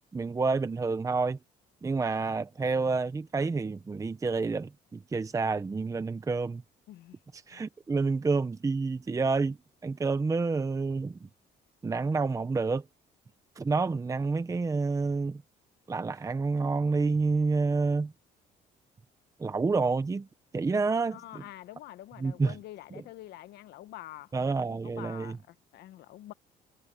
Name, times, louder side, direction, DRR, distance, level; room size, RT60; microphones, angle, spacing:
voice 1, 0.1-1.4 1.8-6.6 7.5-9.6 9.8-11.2 11.8-12.8 13.6-15.4 15.9-18.1 19.4-20.3 20.5-21.4 22.2-22.5 24.3-25.4, right 4 dB, 20° right, 0.8 m, -28 dB
voice 2, 6.9-7.2 7.5-7.6 21.1-24.3 24.8-26.3, left 14 dB, 75° left, 1.1 m, -46 dB
cardioid pair, 110°, 17 cm